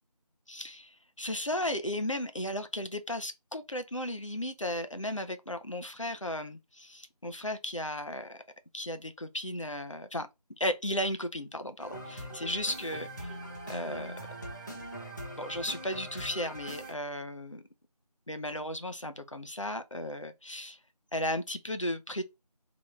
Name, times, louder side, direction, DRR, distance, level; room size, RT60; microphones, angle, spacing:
voice 1, 0.5-8.4 8.7-10.3 10.6-13.3 13.7-14.2 15.4-17.6 18.3-20.8 21.1-22.2, left 1 dB, 50° left, 0.7 m, -35 dB
sound 1, 11.8-16.9, right 1 dB, 30° left, 1.0 m, -42 dB
3.1 x 3.0 x 3.6 m
figure-of-eight pair, 180°, 21 cm